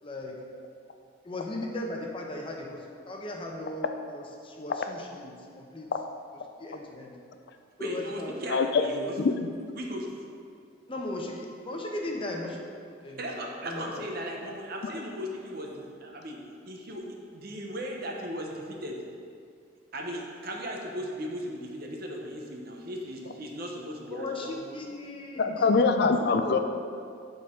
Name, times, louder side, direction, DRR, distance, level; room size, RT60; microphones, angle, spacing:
voice 1, 0.0-0.4 1.2-5.9 6.6-7.1 7.8-8.4 10.9-12.6 13.0-13.2 13.6-14.0 24.1-25.7 26.0-26.6, left 1 dB, 30° left, 0 dB, 0.8 m, -37 dB
voice 2, 7.8-9.1 9.8-10.1 13.2-16.4 16.6-17.0 17.3-19.0 19.9-24.6, equal, 50° right, 0 dB, 0.9 m, -37 dB
voice 3, 9.2-9.5 25.4-26.6, left 4 dB, 55° left, 7 dB, 0.4 m, -23 dB
11.0 x 4.0 x 3.8 m, 2.3 s
head